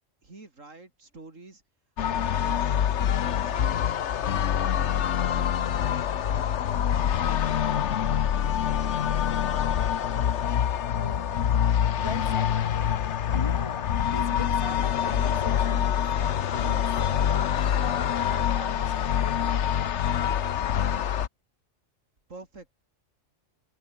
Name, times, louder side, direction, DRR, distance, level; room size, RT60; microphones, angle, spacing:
voice 1, 0.2-1.6 2.2-4.0 4.6-5.9 6.1-9.7 22.3-22.7, right 3 dB, 85° right, 4.2 m, -49 dB
sound 1, 2.0-21.3, left 9 dB, 65° left, 1.2 m, -25 dB
voice 2, 10.9-19.5, left 1 dB, 20° left, 6.1 m, -42 dB
omnidirectional pair, 1.3 m